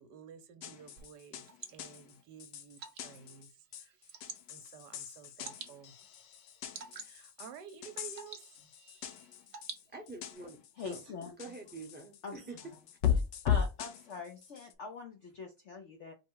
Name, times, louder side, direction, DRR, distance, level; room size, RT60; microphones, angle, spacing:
voice 1, 0.0-5.9 6.9-8.5, right 8 dB, 75° right, 1.2 m, -53 dB
sound 1, 0.6-14.7, left 8 dB, 80° left, 1.3 m, -38 dB
Water / Drip, 1.0-10.3, right 6 dB, 55° right, 0.7 m, -52 dB
voice 2, 9.9-10.6 10.8-11.0 11.4-12.6, right 3 dB, 10° right, 0.8 m, -46 dB
voice 3, 10.8-11.4 12.2-12.7 13.4-16.1, left 4 dB, 65° left, 0.7 m, -43 dB
4.6 x 2.1 x 4.5 m
omnidirectional pair, 1.9 m